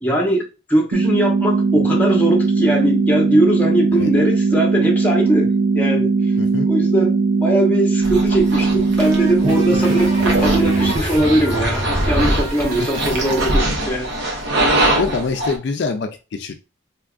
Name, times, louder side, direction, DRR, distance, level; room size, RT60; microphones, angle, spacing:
voice 1, 0.0-5.5 5.7-6.1 6.7-14.1, right 1 dB, 10° left, 0.8 m, -20 dB
sound 1, 0.9-10.9, right 4 dB, 85° right, 0.4 m, -18 dB
voice 2, 6.4-6.7 12.8-12.9 15.0-16.6, left 4 dB, 60° left, 0.4 m, -24 dB
sound 2, 8.0-15.6, right 1 dB, 65° right, 0.9 m, -22 dB
sound 3, 8.6-13.6, right 1 dB, 35° right, 1.5 m, -29 dB
3.5 x 2.8 x 2.3 m
head